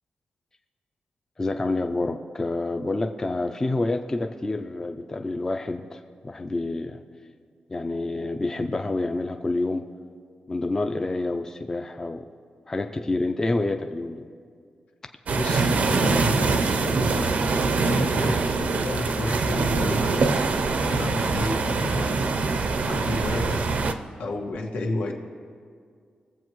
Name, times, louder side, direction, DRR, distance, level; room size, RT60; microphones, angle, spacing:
voice 1, 1.4-7.0 7.7-9.9 10.5-12.3 12.7-14.3, left 2 dB, 20° left, 6 dB, 0.4 m, -28 dB
voice 2, 15.3-20.3 20.8-22.4 22.9-23.6 24.2-25.1, left 2 dB, 85° left, 0 dB, 1.6 m, -32 dB
sound 1, 15.3-23.9, right 4 dB, 55° right, 0.6 m, -24 dB
22.5 x 7.8 x 3.1 m, 2.1 s
wide cardioid pair, 175°, 3 cm